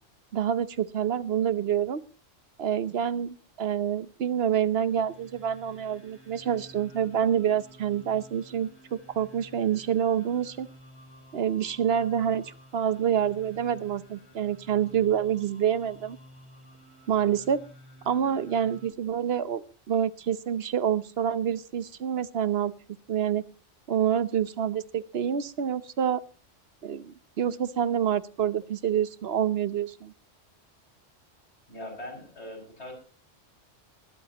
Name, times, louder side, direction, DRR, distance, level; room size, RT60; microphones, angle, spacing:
voice 1, 0.3-2.0 2.6-10.7 11.3-16.2 17.1-17.6 18.0-22.7 23.1-23.4 23.9-26.2 26.8-30.1, right 9 dB, 60° right, 16 dB, 1.0 m, -27 dB
sound 1, 4.6-18.9, equal, 25° left, 4.7 m, -52 dB
voice 2, 31.7-32.9, left 1 dB, 60° left, 1 dB, 6.8 m, -41 dB
21.0 x 12.5 x 2.9 m, 0.34 s
omnidirectional pair, 1.2 m